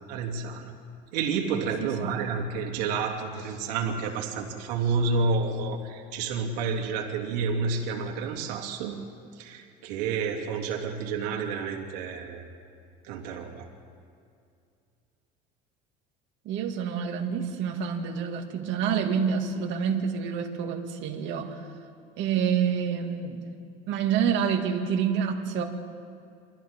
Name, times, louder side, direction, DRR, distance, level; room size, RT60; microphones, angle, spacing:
voice 1, 0.1-0.7 1.1-9.0 9.3-12.4 13.0-13.7, right 4 dB, 80° right, 1 dB, 3.1 m, -30 dB
voice 2, 1.8-2.2 16.4-21.6 22.2-23.4 23.9-25.6, right 7 dB, 60° right, 3 dB, 2.4 m, -28 dB
28.0 x 24.5 x 3.8 m, 2.4 s
supercardioid pair, 100°, 21 cm